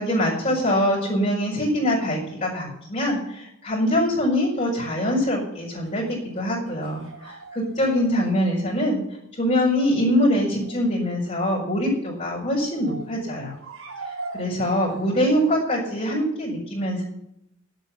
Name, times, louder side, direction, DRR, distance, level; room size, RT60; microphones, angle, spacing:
voice 1, 0.0-9.0 9.4-13.5 14.3-17.0, equal, 35° left, -6 dB, 5.1 m, -23 dB
sound 1, 5.8-8.2 10.5-10.8 12.5-13.1 13.6-15.6, right 3 dB, 70° right, 4.1 m, -40 dB
11.0 x 9.2 x 8.3 m, 0.80 s
head